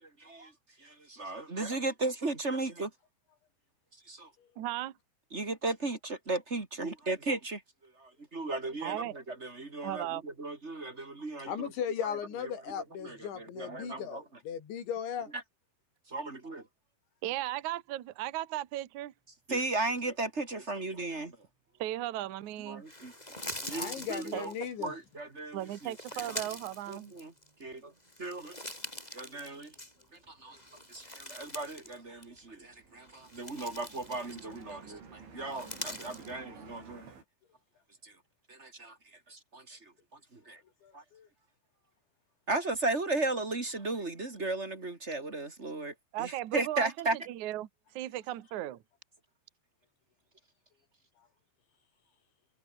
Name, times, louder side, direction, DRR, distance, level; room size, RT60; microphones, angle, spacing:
voice 1, 0.2-0.5 0.8-2.9 4.1-4.3 5.3-7.6 8.0-11.7 13.0-14.2 16.1-16.6 19.5-21.3 22.6-23.1 23.6-24.5 24.8-25.9 26.9-27.3 27.6-27.9 28.2-28.6 29.1-29.7 30.3-30.6 30.9-37.1 38.0-38.1 38.5-39.0 39.3-39.8 40.3-40.6 40.9-41.0 42.5-47.2, right 2 dB, 20° right, 1.8 m, -36 dB
voice 2, 4.6-4.9 8.8-9.1 9.8-10.2 17.2-19.1 21.8-22.8 24.3-24.5 25.5-27.1 46.1-47.7 47.9-48.8, right 14 dB, 60° right, 2.2 m, -36 dB
voice 3, 11.5-15.3 23.7-24.9 40.8-41.3, left 8 dB, 80° left, 6.1 m, -37 dB
sound 1, 22.9-24.9 25.6-27.6 28.0-30.2 30.5-32.0 32.2-32.4 33.0-34.7 35.4-36.3, left 1 dB, 10° left, 7.5 m, -44 dB
sound 2, 24.6-25.9 26.1-37.2, right 5 dB, 85° right, 8.7 m, -55 dB
omnidirectional pair, 5.2 m